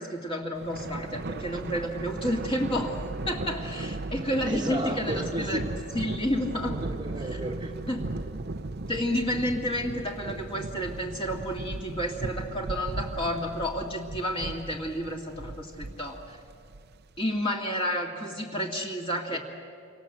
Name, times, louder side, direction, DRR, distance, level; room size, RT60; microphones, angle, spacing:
voice 1, 0.0-3.0 3.3-5.6 5.9-6.8 7.3-7.4 7.9-8.2 8.9-16.4 17.2-19.4, equal, 25° left, 0 dB, 2.2 m, -30 dB
Thunder, 0.6-17.2, right 2 dB, 50° right, 0.7 m, -37 dB
voice 2, 4.5-5.8 6.7-7.8 19.3-19.4, right 1 dB, 20° right, 1 dB, 1.3 m, -33 dB
29.0 x 25.5 x 7.8 m, 2.4 s
head